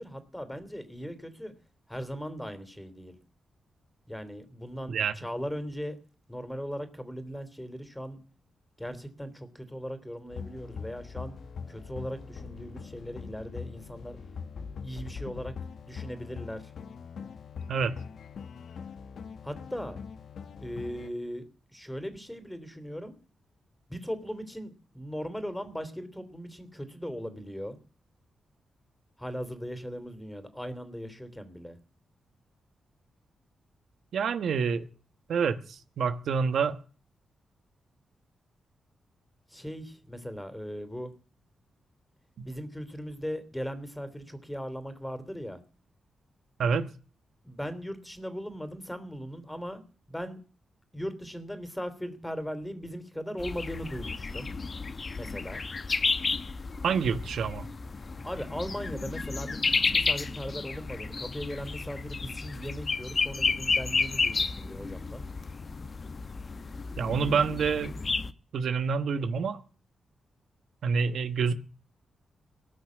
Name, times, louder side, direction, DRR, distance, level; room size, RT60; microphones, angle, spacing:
voice 1, 0.0-1.5 1.9-3.1 4.1-6.0 6.3-8.2 8.8-11.4 11.7-14.2 14.8-15.5 15.9-16.7 19.4-20.0 20.6-23.1 23.9-27.8 29.2-31.8 39.5-41.1 42.4-45.6 47.4-49.8 50.1-50.4 50.9-54.5 55.1-55.6 58.2-65.2, equal, 5° left, 3.1 m, -38 dB
sound 1, 10.3-21.1, left 6 dB, 70° left, 1.1 m, -42 dB
voice 2, 34.1-34.9 35.3-36.8 42.4-42.5 46.6-46.9 56.8-57.7 67.0-67.9 68.5-69.6 70.8-71.5, right 6 dB, 75° right, 1.2 m, -27 dB
sound 2, 53.4-68.3, left 4 dB, 45° left, 1.1 m, -32 dB
18.5 x 6.2 x 9.6 m
cardioid pair, 60°, 0 cm